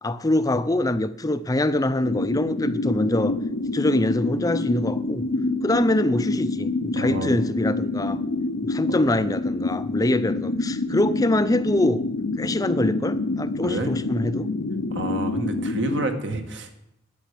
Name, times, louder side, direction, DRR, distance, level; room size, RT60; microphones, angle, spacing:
voice 1, 0.0-3.4 3.7-5.2 5.6-8.2 8.6-12.0 12.4-14.5, left 1 dB, 20° left, 0.5 m, -24 dB
sound 1, 2.0-16.1, left 2 dB, 80° left, 0.9 m, -27 dB
voice 2, 6.9-7.3 8.9-9.0 13.6-13.9 14.9-16.8, right 2 dB, 60° right, 1.6 m, -29 dB
10.0 x 9.2 x 8.4 m
head